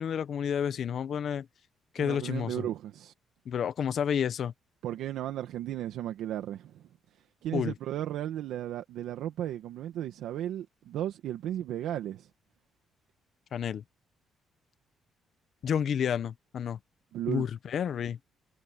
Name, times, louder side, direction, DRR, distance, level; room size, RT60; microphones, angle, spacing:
voice 1, 0.0-1.5 1.9-2.7 3.4-4.5 7.5-7.7 13.5-13.8 15.6-16.8 17.3-18.2, left 8 dB, 60° left, 1.4 m, -30 dB
voice 2, 2.0-3.1 4.8-6.9 7.4-12.3 17.1-17.5, right 12 dB, 85° right, 1.6 m, -35 dB
cardioid pair, 90°, 0 cm